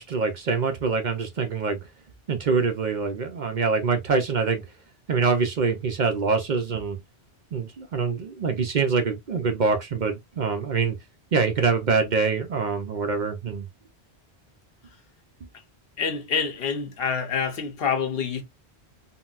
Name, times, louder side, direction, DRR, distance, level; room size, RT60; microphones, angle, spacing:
voice 1, 0.0-1.8 2.3-4.6 5.1-7.0 7.5-11.0 11.3-13.7, right 4 dB, 55° right, 0.6 m, -25 dB
voice 2, 16.0-18.4, left 6 dB, 65° left, 0.9 m, -27 dB
3.8 x 2.1 x 2.3 m
omnidirectional pair, 1.1 m